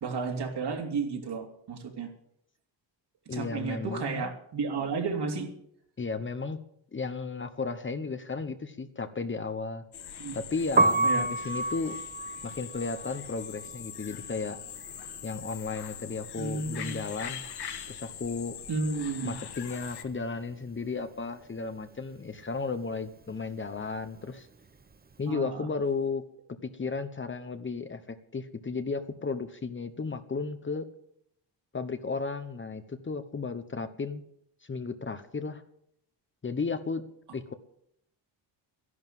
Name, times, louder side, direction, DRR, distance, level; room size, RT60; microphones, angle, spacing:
voice 1, 0.0-2.1 3.3-5.5 10.2-10.4 11.0-11.3 16.4-17.0 18.7-19.3 25.3-25.7, right 4 dB, 60° right, 2 dB, 3.1 m, -32 dB
voice 2, 3.3-4.3 6.0-6.6 6.9-9.8 10.3-12.0 12.4-14.6 15.2-17.4 17.9-18.6 19.2-24.5 25.2-26.2 26.6-30.9 31.7-34.2 34.7-35.6 36.4-37.0 37.3-37.5, left 4 dB, 25° left, 10 dB, 1.0 m, -34 dB
sound 1, 9.9-20.0, left 8 dB, 60° left, 1.5 m, -42 dB
Piano, 10.6-16.6 16.8-18.4 18.7-25.1, right 2 dB, 20° right, 0.8 m, -31 dB
13.0 x 11.0 x 7.6 m, 0.73 s
cardioid pair, 125°, 45 cm